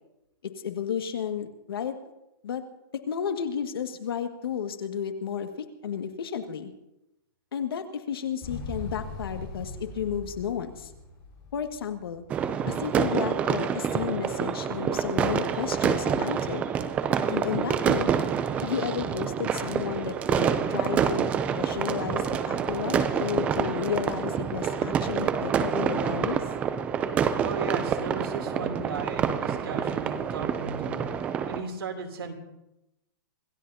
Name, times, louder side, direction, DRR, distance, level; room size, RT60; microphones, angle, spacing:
voice 1, 0.4-1.9 2.4-2.6 3.1-6.7 7.5-10.9 11.5-12.2 12.7-16.7 17.3-18.1 18.6-26.4, left 8 dB, 80° left, 6 dB, 1.9 m, -32 dB
Motorcycle, 8.4-12.3, left 3 dB, 20° left, 4.9 m, -40 dB
sound 1, 12.3-31.6, right 7 dB, 10° right, 0.5 m, -27 dB
voice 2, 27.4-31.2 31.5-32.3, right 4 dB, 90° right, 2 dB, 3.1 m, -35 dB
26.5 x 15.0 x 2.8 m, 0.91 s
hypercardioid pair, 170°, 12 cm